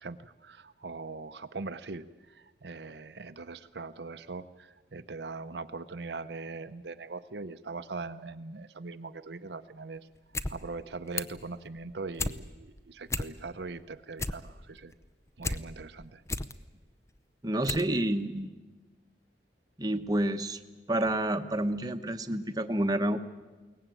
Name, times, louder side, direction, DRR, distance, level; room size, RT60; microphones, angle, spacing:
voice 1, 0.0-10.1 10.5-14.9 15.4-16.2, right 3 dB, 75° right, 9 dB, 0.8 m, -41 dB
sound 1, 10.2-10.5 10.8-11.4 11.8-12.4 12.8-12.9 13.1-13.6 14.0-15.6 16.0-16.5 17.1-17.2 17.6-17.9 18.2-18.3, left 2 dB, 15° left, 0.7 m, -33 dB
voice 2, 17.4-18.5 19.8-20.6 20.9-23.2, right 1 dB, 20° right, 7 dB, 1.0 m, -29 dB
22.5 x 18.5 x 9.2 m, 1.3 s
head